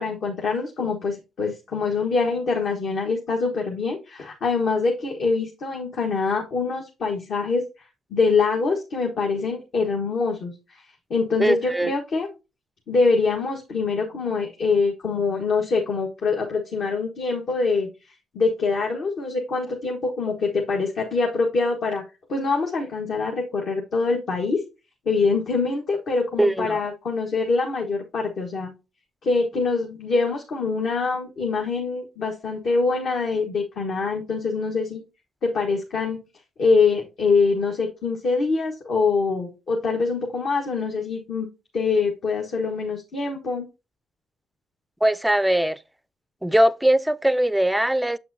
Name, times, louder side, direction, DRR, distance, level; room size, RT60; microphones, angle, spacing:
voice 1, 0.0-10.8 11.1-12.3 12.9-22.0 22.3-24.6 25.0-28.7 29.2-35.0 35.4-36.2 36.6-41.5 41.7-43.7, left 4 dB, 60° left, 1.4 m, -24 dB
voice 2, 11.4-11.9 26.4-26.8 45.0-45.8 46.4-48.2, right 1 dB, 5° right, 0.4 m, -20 dB
7.3 x 5.9 x 2.7 m
supercardioid pair, 65°, 0 cm